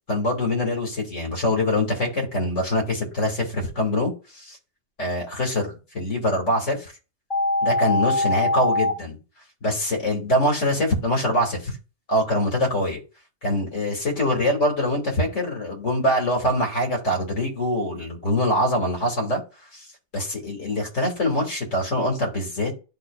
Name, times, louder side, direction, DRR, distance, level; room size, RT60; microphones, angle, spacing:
voice 1, 0.1-4.6 5.0-6.9 7.6-9.2 9.6-11.7 12.1-13.0 13.4-19.4 19.7-19.8 20.1-22.7, left 1 dB, 80° left, 1 dB, 2.2 m, -24 dB
sound 1, 7.3-8.9, left 2 dB, 25° left, 1.1 m, -22 dB
11.5 x 3.9 x 2.3 m, 0.32 s
omnidirectional pair, 1.3 m